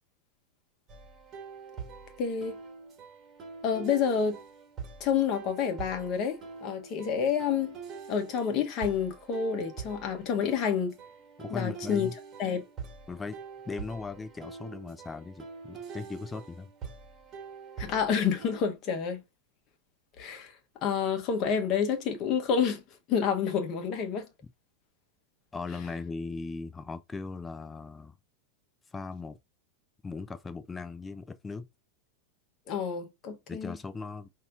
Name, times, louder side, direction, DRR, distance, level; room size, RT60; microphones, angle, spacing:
sound 1, 0.9-18.6, right 5 dB, 25° right, 1.6 m, -45 dB
voice 1, 2.2-2.5 3.6-4.4 5.0-7.8 8.1-10.9 11.5-12.1 12.4-12.7 17.8-19.2 20.2-20.5 20.8-22.8 23.1-24.3 32.7-33.8, left 7 dB, 35° left, 1.1 m, -29 dB
voice 2, 11.4-12.1 13.1-13.4 13.7-16.7 25.5-28.1 28.9-29.4 30.0-31.7 33.5-34.3, left 4 dB, 15° left, 0.6 m, -38 dB
5.4 x 2.8 x 2.4 m
figure-of-eight pair, 90°, 0 cm